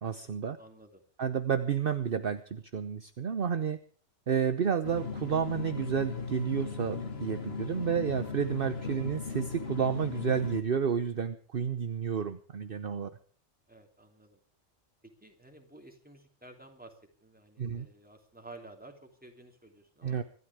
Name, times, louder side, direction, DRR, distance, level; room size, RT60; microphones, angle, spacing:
voice 1, 0.0-0.6 1.2-3.8 4.3-13.1 17.6-17.9 20.0-20.2, right 7 dB, 50° right, 10 dB, 1.0 m, -31 dB
voice 2, 0.6-1.0 8.8-9.1 13.7-14.4 15.0-16.9 17.2-20.2, right 2 dB, 5° right, 3 dB, 3.1 m, -52 dB
sound 1, 4.8-10.6, left 5 dB, 55° left, 1.7 m, -38 dB
26.0 x 12.5 x 3.6 m, 0.41 s
omnidirectional pair, 1.2 m